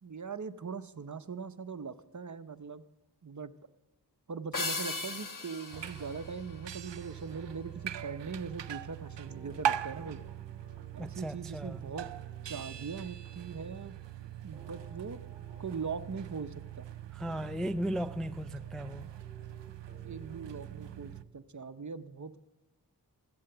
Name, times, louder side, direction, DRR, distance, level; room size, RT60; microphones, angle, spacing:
voice 1, 0.0-2.8 3.2-3.5 4.3-10.2 10.9-12.1 12.4-14.0 14.4-15.2 15.6-16.9 19.7-19.8 20.0-22.4, right 5 dB, 45° right, 0.7 m, -41 dB
sound 1, 4.5-7.2, left 3 dB, 50° left, 1.2 m, -38 dB
sound 2, 5.7-21.2, right 10 dB, 85° right, 0.5 m, -41 dB
sound 3, 7.0-21.2, right 1 dB, 15° right, 2.8 m, -57 dB
voice 2, 11.0-11.8 17.1-19.0, equal, ahead, 0.3 m, -36 dB
13.5 x 8.7 x 6.7 m
wide cardioid pair, 40°, 42 cm